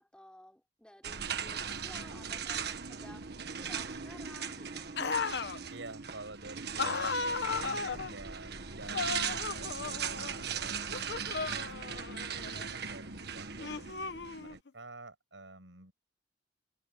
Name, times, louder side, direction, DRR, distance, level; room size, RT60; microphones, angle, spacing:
voice 1, 0.0-4.8, left 1 dB, 5° left, 3.5 m, -54 dB
sound 1, 1.0-14.6, right 6 dB, 60° right, 1.6 m, -39 dB
sound 2, 5.0-5.6 6.8-8.1 8.9-10.4 10.9-12.7 13.6-14.7, left 4 dB, 65° left, 0.9 m, -36 dB
voice 2, 5.7-11.9 12.4-15.9, right 2 dB, 80° right, 7.1 m, -50 dB
head